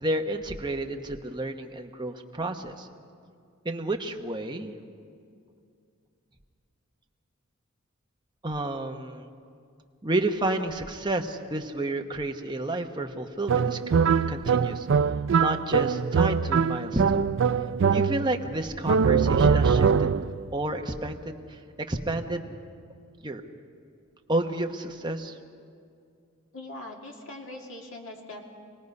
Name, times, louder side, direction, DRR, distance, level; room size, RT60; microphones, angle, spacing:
voice 1, 0.0-2.9 3.6-4.8 8.4-9.3 10.0-14.9 15.4-17.3 17.9-20.1 20.5-22.4 23.2-23.4 24.3-25.4, right 1 dB, 20° right, 3 dB, 1.0 m, -30 dB
sound 1, 13.5-18.4 18.9-20.4, right 6 dB, 55° right, 0.4 m, -23 dB
voice 2, 26.5-28.4, left 2 dB, 60° left, 0 dB, 2.3 m, -41 dB
26.0 x 18.5 x 5.4 m, 2.4 s
head